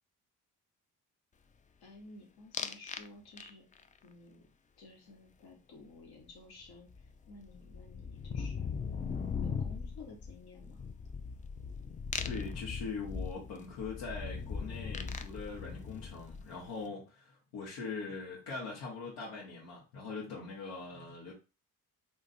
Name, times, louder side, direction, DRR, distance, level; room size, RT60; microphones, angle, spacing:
voice 1, 1.8-3.7 4.0-4.5 4.8-8.8 9.4-10.9, left 3 dB, 60° left, 1.3 m, -53 dB
sound 1, 2.5-3.1 3.4-3.8 6.3-6.4 6.6-16.7, left 5 dB, 20° left, 0.3 m, -39 dB
voice 2, 12.2-21.3, left 4 dB, 80° left, 1.2 m, -42 dB
2.5 x 2.5 x 4.1 m
hypercardioid pair, 45°, 42 cm